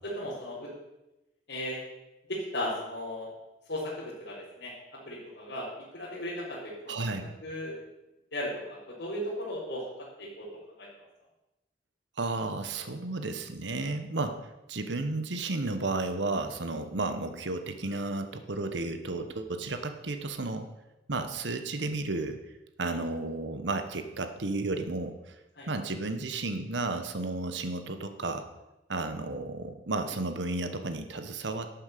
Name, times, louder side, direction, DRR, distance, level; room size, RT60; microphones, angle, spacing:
voice 1, 0.0-0.7 1.5-1.8 2.3-3.3 3.7-4.7 5.0-5.7 5.9-7.2 7.4-7.8 8.3-9.8 10.2-10.5 10.8-10.9 22.9-23.0 25.6-25.7, left 1 dB, 70° left, -10 dB, 4.4 m, -36 dB
voice 2, 6.9-7.2 12.2-20.7 21.1-22.4 22.8-25.3 25.7-28.4 28.9-31.7, right 2 dB, 75° right, 8 dB, 1.1 m, -33 dB
11.5 x 8.7 x 6.8 m, 0.96 s
head